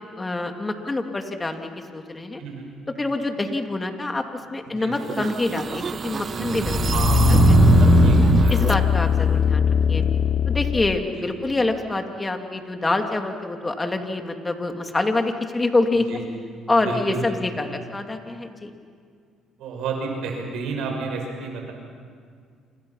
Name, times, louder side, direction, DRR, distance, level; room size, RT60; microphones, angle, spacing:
voice 1, 0.0-2.4 3.0-4.2 4.5-7.5 8.5-10.0 10.5-16.1 16.7-18.7, left 2 dB, 20° left, 4 dB, 2.9 m, -26 dB
sound 1, 5.0-8.8, right 6 dB, 45° right, 0.6 m, -20 dB
sound 2, 6.7-11.0 11.5-11.6, left 8 dB, 55° left, 0.6 m, -20 dB
voice 2, 6.9-8.8 11.2-11.5 16.1-16.2 16.8-17.2 17.5-17.6 19.6-21.7, right 4 dB, 75° right, 2 dB, 6.1 m, -31 dB
29.0 x 27.0 x 5.8 m, 2.1 s
supercardioid pair, 65°, 0 cm